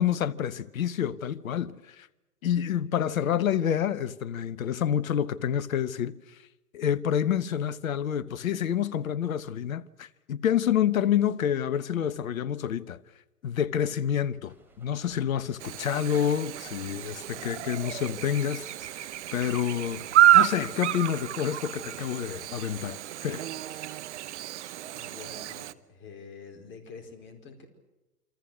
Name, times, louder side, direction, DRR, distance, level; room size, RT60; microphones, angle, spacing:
voice 1, 0.0-2.1 2.4-6.4 6.7-13.0 13.4-20.0 20.3-23.4, left 9 dB, 60° left, 1.3 m, -28 dB
sound 1, 14.4-21.0, right 2 dB, 5° right, 4.5 m, -58 dB
Chirp tweet / Buzz, 15.6-25.7, right 13 dB, 45° right, 1.0 m, -28 dB
voice 2, 24.9-27.7, left 5 dB, 25° left, 4.8 m, -47 dB
28.5 x 25.0 x 6.4 m
figure-of-eight pair, 120°, 47 cm